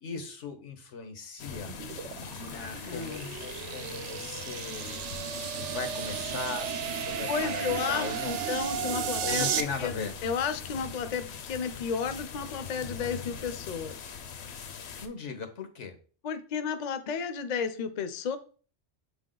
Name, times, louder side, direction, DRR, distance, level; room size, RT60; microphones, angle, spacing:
voice 1, 0.0-1.7 2.4-5.0 5.5-8.4 9.2-10.1 15.0-16.0, left 5 dB, 85° left, 7 dB, 1.3 m, -38 dB
sound 1, 1.4-15.1, left 6 dB, 70° left, 0.9 m, -42 dB
sound 2, 1.6-9.6, right 9 dB, 85° right, 0.9 m, -34 dB
voice 2, 2.8-3.4 7.3-9.5 9.8-14.0 16.2-18.4, left 6 dB, 50° left, 11 dB, 0.6 m, -33 dB
7.0 x 3.5 x 3.8 m, 0.40 s
omnidirectional pair, 1.2 m